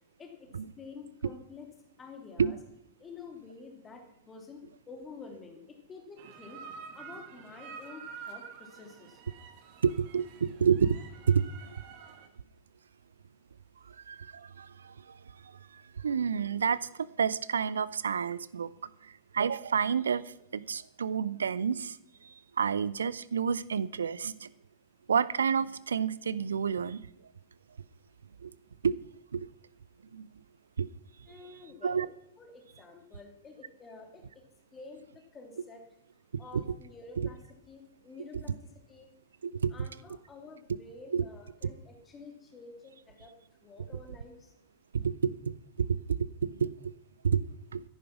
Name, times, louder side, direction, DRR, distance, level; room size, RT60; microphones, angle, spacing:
voice 1, 0.8-1.7 2.0-2.6 3.0-6.6 6.9-9.2 31.3-32.1 32.4-34.3 34.7-35.8 36.4-37.4 37.7-39.1 39.7-43.3 43.6-44.5, left 4 dB, 20° left, 3 dB, 3.1 m, -49 dB
sound 1, 6.2-12.3, right 6 dB, 50° right, 1.8 m, -48 dB
voice 2, 9.8-11.0 11.3-11.4 14.1-14.9 16.0-16.8 17.2-18.7 19.3-20.2 20.5-22.0 22.6-24.5 25.1-27.1 28.4-28.5 28.8-28.9 29.3-29.5 30.1-30.3 30.8-30.9 31.8-32.1 36.5-36.6 37.2-37.3 39.4-39.7 41.1-41.2 45.0-46.7 47.2-47.4 47.7-47.8, right 6 dB, 70° right, 19 dB, 0.6 m, -29 dB
13.5 x 11.0 x 6.1 m, 0.77 s
figure-of-eight pair, 90°, 0 cm